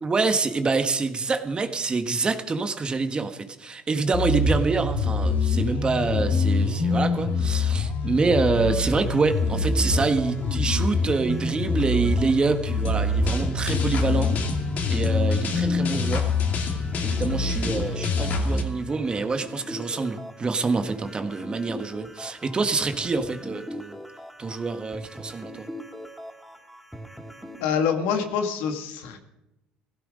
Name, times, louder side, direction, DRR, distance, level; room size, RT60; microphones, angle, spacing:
voice 1, 0.0-14.3 14.9-16.7 17.0-23.9 24.4-25.7, right 4 dB, 30° right, 8 dB, 1.5 m, -26 dB
sound 1, 4.1-18.6, left 3 dB, 55° left, 2.5 m, -25 dB
sound 2, 8.6-27.6, equal, ahead, 1.8 m, -41 dB
voice 2, 27.6-29.2, left 6 dB, 85° left, 6 dB, 1.9 m, -26 dB
16.0 x 13.5 x 5.2 m, 0.91 s
supercardioid pair, 90°, 3 cm